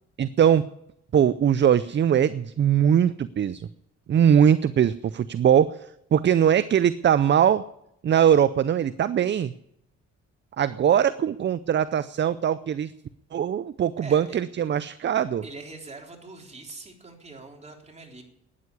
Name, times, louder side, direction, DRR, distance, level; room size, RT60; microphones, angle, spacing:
voice 1, 0.2-0.6 1.1-3.7 4.1-7.6 8.0-9.5 10.6-12.9 13.3-15.4, right 9 dB, 40° right, 16 dB, 0.5 m, -21 dB
voice 2, 14.0-14.4 15.4-18.2, right 3 dB, 20° right, 1 dB, 3.7 m, -43 dB
12.5 x 9.6 x 9.7 m, 0.80 s
cardioid pair, 90°, 30 cm